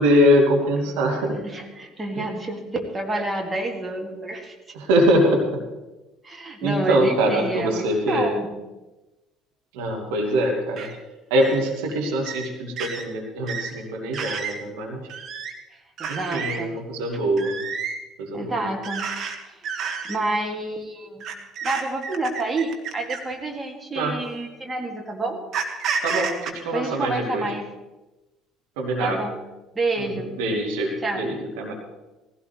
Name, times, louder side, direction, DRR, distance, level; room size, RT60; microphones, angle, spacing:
voice 1, 0.0-1.4 4.9-5.4 6.6-8.3 9.8-10.8 11.3-15.0 16.1-17.5 18.2-18.5 24.0-24.2 26.0-26.3 26.7-27.4 28.8-29.2 30.4-30.9 31.2-31.3 31.6-31.7, equal, 65° right, 1 dB, 2.1 m, -22 dB
voice 2, 1.3-4.6 6.2-8.5 15.7-16.8 18.3-19.1 19.5-19.7 20.0-21.2 21.6-25.4 26.7-27.7 29.0-29.4 29.7-30.3 31.0-31.3, right 2 dB, 20° right, 2 dB, 2.5 m, -29 dB
sound 1, 10.8-10.9 11.4-11.6 12.2-12.5 12.8-13.0 13.5-13.7 14.1-14.6 15.1-15.5 16.0-16.6 17.4-18.0 18.8-19.3 19.6-20.2 21.2-23.3 24.2-24.4 25.5-26.5, right 6 dB, 45° right, 1.8 m, -30 dB
18.5 x 16.0 x 3.3 m, 1.1 s
figure-of-eight pair, 55°, 0 cm